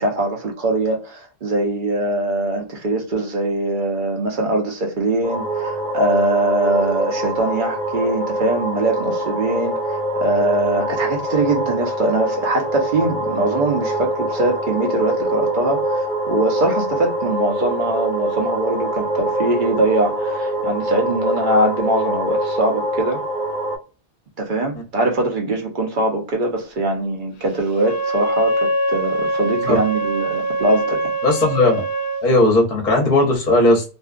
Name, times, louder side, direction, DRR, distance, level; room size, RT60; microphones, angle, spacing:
voice 1, 0.0-23.2 24.4-31.0, right 2 dB, 50° right, 0.8 m, -22 dB
sound 1, 5.2-23.8, right 1 dB, 5° left, 0.7 m, -24 dB
Wind instrument woodwind instrument, 27.8-32.2, right 2 dB, 70° left, 0.8 m, -23 dB
voice 2, 31.2-31.8 32.2-33.8, left 2 dB, 40° left, 0.8 m, -16 dB
2.5 x 2.3 x 2.4 m
omnidirectional pair, 1.1 m